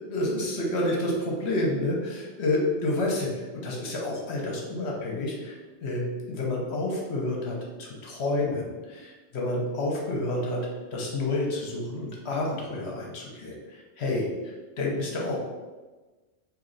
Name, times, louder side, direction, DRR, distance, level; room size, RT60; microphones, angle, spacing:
voice 1, 0.0-6.0 6.3-10.6 10.9-13.6 14.0-14.3 14.8-15.4, left 2 dB, 60° left, -1 dB, 1.0 m, -29 dB
3.0 x 2.7 x 3.8 m, 1.2 s
omnidirectional pair, 1.3 m